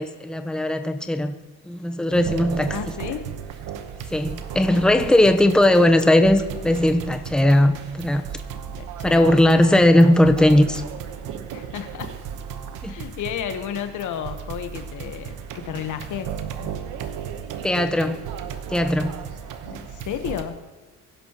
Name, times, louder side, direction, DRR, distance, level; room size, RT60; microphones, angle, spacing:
voice 1, 0.0-1.3 1.6-2.8 4.1-8.2 9.0-10.8 12.8-13.0 17.6-18.2 18.7-19.1, left 1 dB, 5° left, 6 dB, 0.9 m, -18 dB
sound 1, 2.1-20.5, right 8 dB, 90° right, 1.1 m, -35 dB
voice 2, 2.7-3.3 4.7-5.2 8.8-9.3 11.5-12.1 12.9-16.3 16.6-16.8 19.6-20.6, left 9 dB, 80° left, 8 dB, 1.1 m, -32 dB
22.0 x 11.5 x 3.0 m, 1.3 s
cardioid pair, 90°, 30 cm